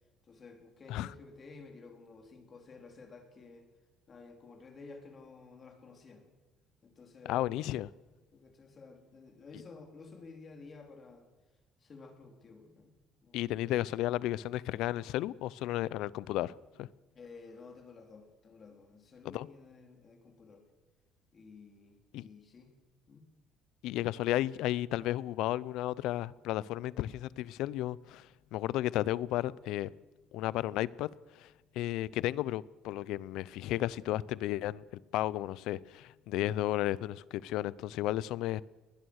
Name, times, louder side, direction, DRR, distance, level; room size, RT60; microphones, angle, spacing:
voice 1, 0.3-3.7 4.1-6.3 6.8-7.7 8.3-11.3 11.8-12.9 13.2-13.5 17.1-20.6 21.3-22.7 23.1-23.3, left 4 dB, 30° left, 4.1 m, -52 dB
voice 2, 7.3-7.9 13.3-16.9 19.2-19.5 22.1-22.2 23.8-29.9 30.3-34.8 35.1-38.6, left 14 dB, 80° left, 0.6 m, -33 dB
20.5 x 20.5 x 6.5 m
cardioid pair, 135°, 0 cm